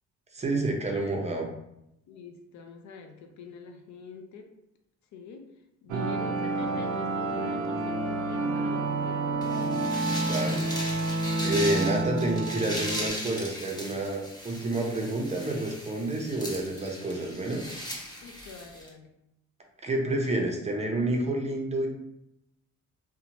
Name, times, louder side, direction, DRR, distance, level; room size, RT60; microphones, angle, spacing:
voice 1, 0.3-1.5 10.3-10.7 11.4-17.6 19.8-21.9, right 2 dB, 20° right, 1 dB, 0.5 m, -29 dB
voice 2, 2.1-4.5 5.1-5.5 5.8-9.4 18.2-19.2, left 4 dB, 70° left, 4 dB, 0.5 m, -44 dB
sound 1, 5.9-13.1, right 2 dB, 80° right, 0.5 m, -29 dB
sound 2, 9.4-18.9, equal, 15° left, 0.9 m, -38 dB
2.7 x 2.1 x 2.8 m, 0.84 s
cardioid pair, 90°, 30 cm